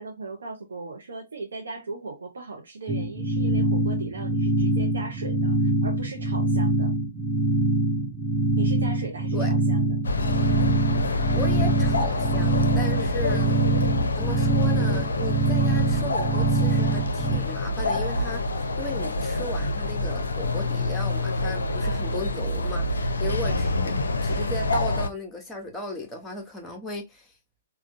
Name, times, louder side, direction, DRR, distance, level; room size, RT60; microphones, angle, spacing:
voice 1, 0.0-6.9 8.5-9.9, right 3 dB, 65° right, 0.6 m, -38 dB
sound 1, 2.9-17.4, right 3 dB, 10° right, 0.6 m, -24 dB
sound 2, 10.0-25.1, left 2 dB, 65° left, 0.5 m, -27 dB
voice 2, 11.4-13.6 14.1-18.4 18.8-27.3, left 2 dB, 10° left, 0.9 m, -36 dB
3.6 x 2.2 x 2.5 m
figure-of-eight pair, 115°, 0 cm